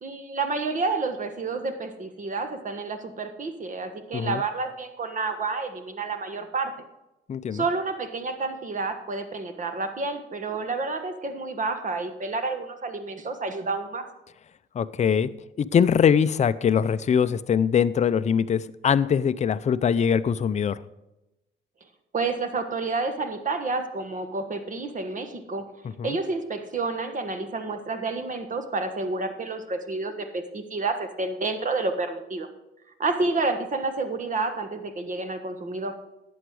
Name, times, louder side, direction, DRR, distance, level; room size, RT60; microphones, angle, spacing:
voice 1, 0.0-6.7 7.5-14.0 22.1-25.7 26.0-32.5 33.0-35.9, right 3 dB, 40° right, 8 dB, 1.4 m, -29 dB
voice 2, 7.3-7.6 14.7-15.3 15.6-20.8 26.0-26.2, left 7 dB, 35° left, 13 dB, 0.5 m, -22 dB
11.5 x 7.9 x 4.8 m, 0.94 s
cardioid pair, 90°, 20 cm